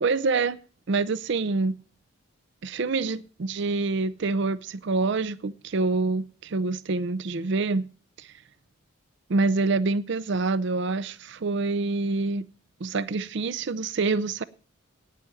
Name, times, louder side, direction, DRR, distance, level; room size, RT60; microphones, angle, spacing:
voice 1, 0.0-0.6 0.9-1.7 2.6-7.9 8.2-8.3 9.3-12.4 12.8-14.4, right 3 dB, 60° right, 0.5 m, -26 dB
9.5 x 9.2 x 9.0 m
head